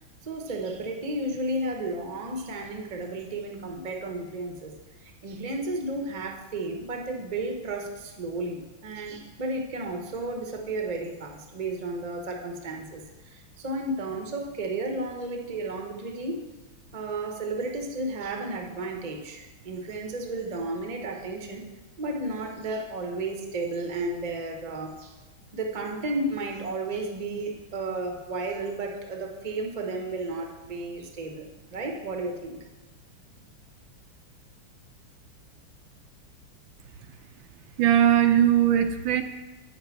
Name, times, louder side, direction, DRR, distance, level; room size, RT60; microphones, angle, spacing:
voice 1, 0.2-4.7 5.0-16.5 16.9-21.6 22.0-25.2 25.5-32.6, right 2 dB, 35° right, 2 dB, 0.7 m, -33 dB
voice 2, 37.8-39.2, right 10 dB, 80° right, 8 dB, 1.3 m, -20 dB
8.4 x 6.6 x 5.9 m, 1.1 s
omnidirectional pair, 2.3 m